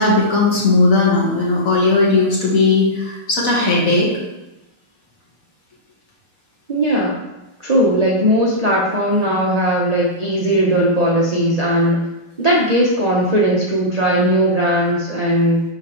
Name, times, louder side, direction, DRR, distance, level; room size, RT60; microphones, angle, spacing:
voice 1, 0.0-4.1, left 3 dB, 45° left, -4 dB, 1.8 m, -16 dB
voice 2, 6.7-7.2 7.6-12.0 12.4-15.6, equal, 40° right, -4 dB, 0.5 m, -17 dB
10.5 x 3.6 x 3.0 m, 0.98 s
omnidirectional pair, 2.1 m